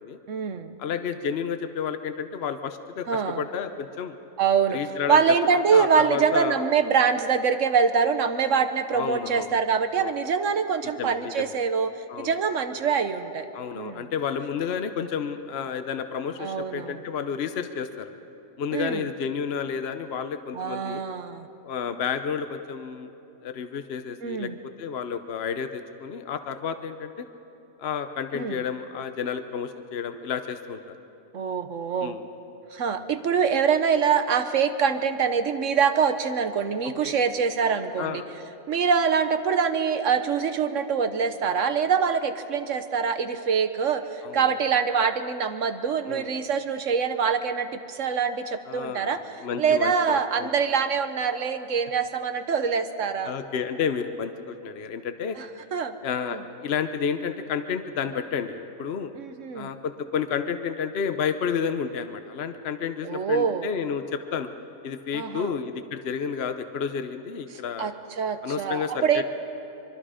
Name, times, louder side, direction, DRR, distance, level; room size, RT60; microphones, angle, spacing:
voice 1, 0.3-0.8 3.1-3.4 4.4-4.8 5.1-11.9 12.2-13.5 13.7-14.0 16.4-17.0 18.7-19.1 20.5-21.5 24.2-24.6 28.3-28.6 31.3-32.2 32.7-38.2 38.7-49.2 49.6-53.3 55.4-55.5 55.7-55.9 56.2-56.4 59.1-59.7 63.0-63.7 65.1-65.5 67.5-69.2, right 6 dB, 60° right, 9 dB, 1.2 m, -24 dB
voice 2, 0.8-4.2 4.7-5.4 5.7-6.6 8.9-9.5 10.0-10.1 11.0-11.6 12.1-12.4 13.5-18.1 18.6-21.0 21.6-23.1 23.4-27.3 27.8-31.0 32.0-32.2 37.0-37.1 38.0-38.3 44.2-44.4 46.1-46.3 48.7-50.5 53.2-55.4 56.0-59.1 59.5-64.5 64.8-67.9 68.4-69.2, left 7 dB, 50° left, 8 dB, 0.9 m, -31 dB
24.5 x 23.5 x 5.0 m, 3.0 s
omnidirectional pair, 1.5 m